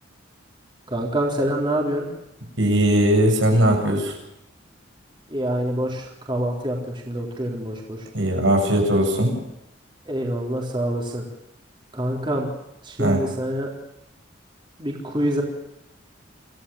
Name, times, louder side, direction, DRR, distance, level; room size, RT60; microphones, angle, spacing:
voice 1, 0.9-2.1 5.3-8.0 10.1-11.3 11.9-12.5 12.8-13.7 14.8-15.4, right 1 dB, 25° right, 0 dB, 4.0 m, -26 dB
voice 2, 2.6-4.1 8.1-9.4 13.0-13.2, right 1 dB, 80° right, 3 dB, 7.9 m, -19 dB
26.5 x 16.0 x 7.2 m, 0.86 s
head